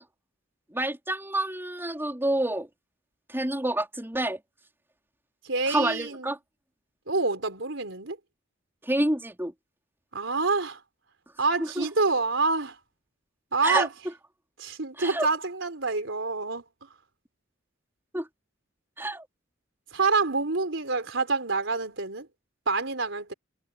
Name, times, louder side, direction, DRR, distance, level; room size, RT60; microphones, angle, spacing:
voice 1, 0.7-2.7 3.3-4.4 5.7-6.4 8.8-9.5 11.8-11.9 13.6-13.9 15.0-15.3 18.1-18.3 19.0-19.2, right 1 dB, 10° right, 4.4 m, -28 dB
voice 2, 5.4-6.3 7.1-8.2 10.1-10.8 11.4-12.8 13.5-13.9 14.6-16.6 19.9-22.3 22.7-23.3, right 3 dB, 70° right, 4.6 m, -27 dB
head